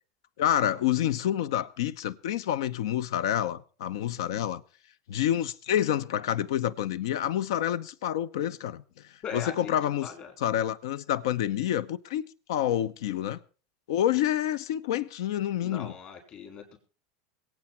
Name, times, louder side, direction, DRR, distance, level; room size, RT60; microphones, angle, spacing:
voice 1, 0.4-4.6 5.1-8.8 9.3-10.1 10.4-13.4 13.9-15.9, left 11 dB, 80° left, 0.7 m, -28 dB
voice 2, 9.2-9.7 10.0-10.3 15.6-16.8, left 6 dB, 45° left, 5.7 m, -39 dB
22.0 x 8.9 x 4.4 m
hypercardioid pair, 105°, 2 cm